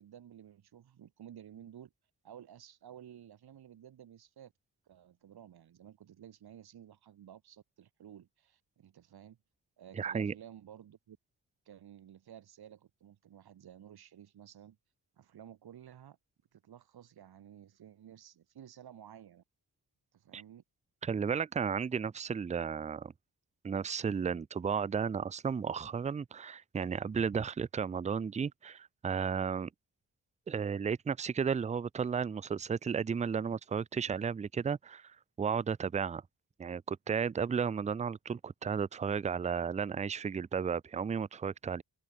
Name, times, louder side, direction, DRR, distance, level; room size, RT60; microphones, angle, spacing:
voice 1, 0.0-1.9 2.2-4.5 4.9-9.4 9.8-11.2 11.7-14.8 15.2-16.2 16.5-19.4 20.1-20.6, right 10 dB, 75° right, 3.9 m, -53 dB
voice 2, 9.9-10.3 20.3-20.4 21.0-23.1 23.6-29.7 30.5-35.1 35.4-36.2 36.6-41.8, right 6 dB, 20° right, 0.4 m, -33 dB
wide cardioid pair, 180°, 38 cm